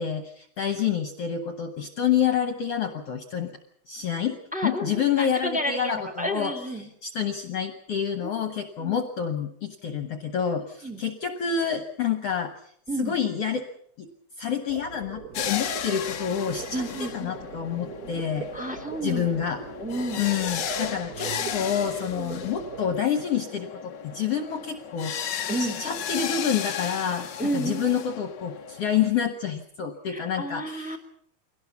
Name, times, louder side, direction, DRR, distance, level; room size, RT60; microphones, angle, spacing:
voice 1, 0.0-3.5 3.9-4.4 4.6-6.5 6.8-12.7 13.0-13.6 14.0-14.1 14.4-18.5 19.0-19.6 20.2-25.1 25.6-27.3 27.5-31.0, left 8 dB, 60° left, 7 dB, 1.9 m, -28 dB
voice 2, 4.5-6.9 8.2-8.3 8.8-8.9 10.8-11.1 12.9-13.2 16.7-17.3 18.5-19.5 19.8-20.2 22.1-22.4 25.5-25.8 27.4-27.9 30.1-31.0, right 1 dB, 5° right, 5 dB, 1.8 m, -31 dB
sound 1, 14.7-23.0, right 5 dB, 85° right, 0.8 m, -40 dB
sound 2, 15.3-29.1, left 8 dB, 80° left, 0.9 m, -35 dB
23.0 x 17.5 x 7.1 m, 0.68 s
omnidirectional pair, 3.5 m